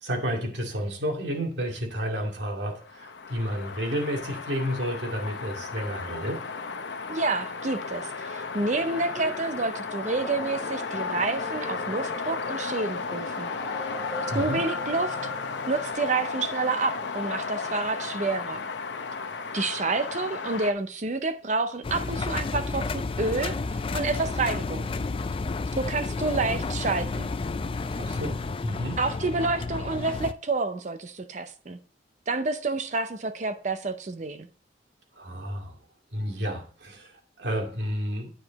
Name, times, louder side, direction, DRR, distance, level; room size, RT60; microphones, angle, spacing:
voice 1, 0.0-6.4 14.3-14.6 28.0-29.0 35.2-35.7 36.1-37.1 37.4-38.3, equal, 75° right, 2.2 m, -31 dB
sound 1, 2.8-20.7, left 4 dB, 75° left, 0.8 m, -34 dB
voice 2, 7.1-13.5 14.3-15.2 15.7-18.6 19.5-24.9 25.8-27.3 29.0-31.8 32.3-34.5, right 3 dB, 40° right, 0.6 m, -29 dB
sound 2, 9.0-15.9, left 1 dB, 10° left, 2.1 m, -41 dB
Engine, 21.8-30.3, left 3 dB, 30° left, 0.3 m, -31 dB
9.7 x 5.0 x 4.0 m
head